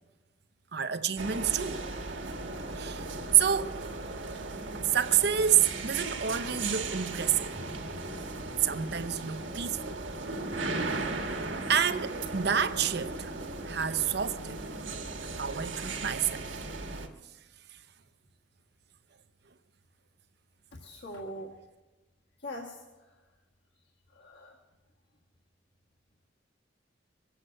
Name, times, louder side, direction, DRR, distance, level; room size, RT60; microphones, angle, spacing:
voice 1, 0.7-1.8 2.8-3.8 4.8-7.5 8.6-10.0 11.7-13.3 13.7-15.0 15.3-16.5, right 9 dB, 60° right, 0.7 m, -28 dB
sound 1, 1.2-17.1, right 3 dB, 75° right, 1.6 m, -37 dB
voice 2, 20.7-21.5 22.4-22.8 24.1-24.6, equal, 65° left, 1.7 m, -42 dB
22.5 x 8.0 x 7.8 m
head